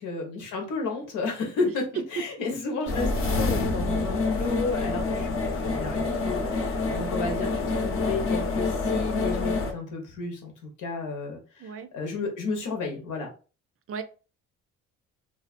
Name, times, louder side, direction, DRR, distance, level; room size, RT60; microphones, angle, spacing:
voice 1, 0.0-5.3 5.6-10.5 10.8-13.3, left 3 dB, 85° left, 0.9 m, -32 dB
sound 1, 2.9-9.7, left 3 dB, 45° left, 0.7 m, -27 dB
voice 2, 11.6-11.9 13.9-14.0, right 6 dB, 50° right, 0.4 m, -36 dB
2.6 x 2.3 x 2.5 m
cardioid pair, 90°, 30 cm